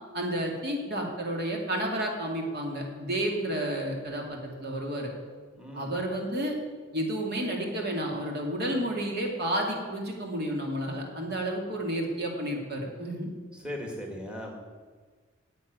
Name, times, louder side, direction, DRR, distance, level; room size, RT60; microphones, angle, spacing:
voice 1, 0.1-5.1 5.7-6.5 6.9-13.3, right 1 dB, 55° right, 0 dB, 2.5 m, -31 dB
voice 2, 5.5-6.0 13.5-14.6, left 1 dB, 5° right, 1 dB, 2.1 m, -38 dB
10.0 x 8.4 x 9.5 m, 1.5 s
head